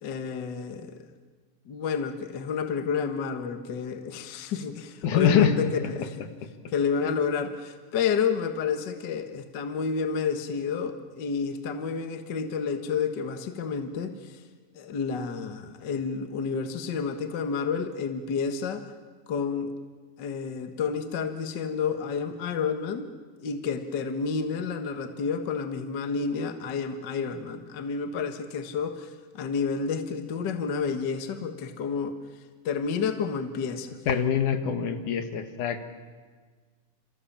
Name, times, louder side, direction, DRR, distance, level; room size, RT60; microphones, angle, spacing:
voice 1, 0.0-1.1 1.7-6.2 6.7-14.4 14.7-18.8 19.3-19.7 20.2-23.1 23.4-32.1 32.6-33.9, left 5 dB, 45° left, 7 dB, 1.4 m, -30 dB
voice 2, 5.0-5.6 34.1-35.9, left 8 dB, 70° left, 7 dB, 3.1 m, -24 dB
28.0 x 28.0 x 7.4 m, 1.5 s
omnidirectional pair, 3.8 m